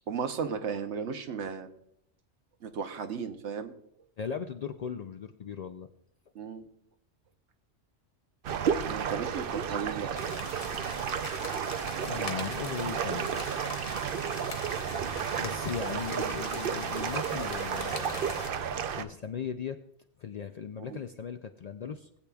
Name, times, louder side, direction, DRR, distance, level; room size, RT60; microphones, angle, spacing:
voice 1, 0.1-1.7 2.6-3.7 6.3-6.7 8.9-10.1 20.8-21.0, right 6 dB, 75° right, 7 dB, 1.1 m, -35 dB
voice 2, 4.2-5.9 12.0-13.3 15.4-18.5 19.0-19.8 20.2-22.3, left 7 dB, 65° left, 7 dB, 0.4 m, -38 dB
sound 1, 8.4-19.0, right 7 dB, 60° right, 0.7 m, -32 dB
sound 2, 10.2-18.5, left 3 dB, 35° left, 0.9 m, -43 dB
18.5 x 8.3 x 2.3 m, 0.73 s
omnidirectional pair, 1.2 m